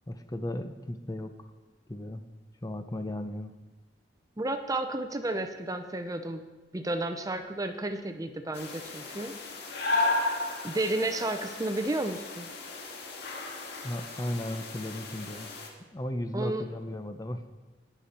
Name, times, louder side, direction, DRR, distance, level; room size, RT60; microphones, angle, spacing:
voice 1, 0.1-1.3 1.9-2.2 2.6-3.5 13.8-15.5 15.9-17.4, left 1 dB, 20° left, 8 dB, 0.6 m, -35 dB
voice 2, 4.4-6.4 6.7-9.3 10.6-12.5 16.3-16.6, right 2 dB, 20° right, 8 dB, 0.7 m, -32 dB
sound 1, 8.5-15.7, left 2 dB, 60° left, 1.8 m, -34 dB
18.5 x 7.0 x 4.3 m, 1.2 s
head